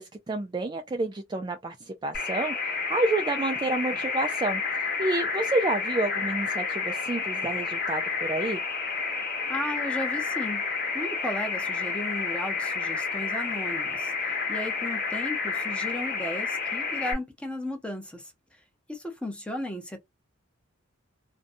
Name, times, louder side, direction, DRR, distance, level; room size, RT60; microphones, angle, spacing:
voice 1, 0.0-4.6 5.0-8.6, right 2 dB, 20° right, 0.3 m, -29 dB
sound 1, 2.1-17.1, left 5 dB, 50° left, 0.9 m, -30 dB
voice 2, 9.5-10.6 10.9-18.3 18.9-20.0, left 1 dB, 5° left, 0.7 m, -35 dB
2.5 x 2.2 x 2.5 m
head